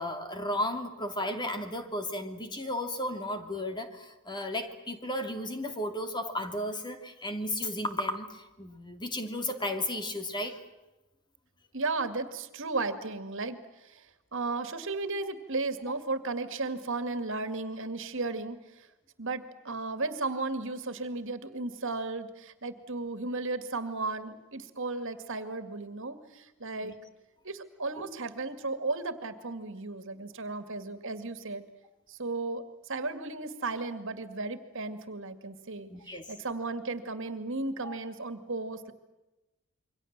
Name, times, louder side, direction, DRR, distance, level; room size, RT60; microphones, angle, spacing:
voice 1, 0.0-10.6 26.8-26.9 28.0-28.1 35.9-36.3 37.8-38.0, left 1 dB, 20° left, 6 dB, 2.7 m, -34 dB
voice 2, 11.7-18.9 19.2-27.0 27.4-31.7 32.1-38.9, right 3 dB, 60° right, 11 dB, 2.3 m, -35 dB
28.5 x 24.0 x 7.5 m, 1.0 s
head